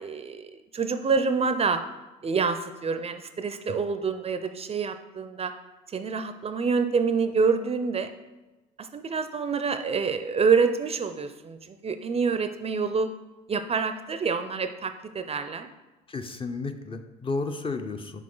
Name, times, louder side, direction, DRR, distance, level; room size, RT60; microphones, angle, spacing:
voice 1, 0.0-1.8 2.2-5.5 5.9-8.1 8.8-13.1 13.5-15.7, right 5 dB, 30° right, 9 dB, 0.5 m, -27 dB
voice 2, 16.1-18.1, left 3 dB, 25° left, 7 dB, 0.6 m, -32 dB
5.8 x 4.7 x 3.8 m, 1.1 s
supercardioid pair, 70°, 20 cm